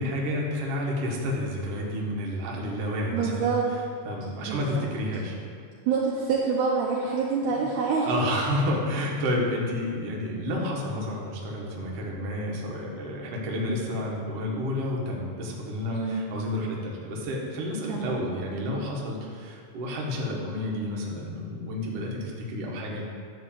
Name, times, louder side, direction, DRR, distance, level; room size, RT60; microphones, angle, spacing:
voice 1, 0.0-3.6 4.1-5.4 7.4-7.6 8.0-23.1, left 1 dB, 55° right, -2 dB, 1.8 m, -30 dB
voice 2, 3.1-3.7 4.4-4.8 5.9-8.1 15.9-16.2 17.9-18.2, right 5 dB, 75° right, -3 dB, 2.0 m, -26 dB
11.5 x 3.8 x 7.5 m, 2.2 s
omnidirectional pair, 4.2 m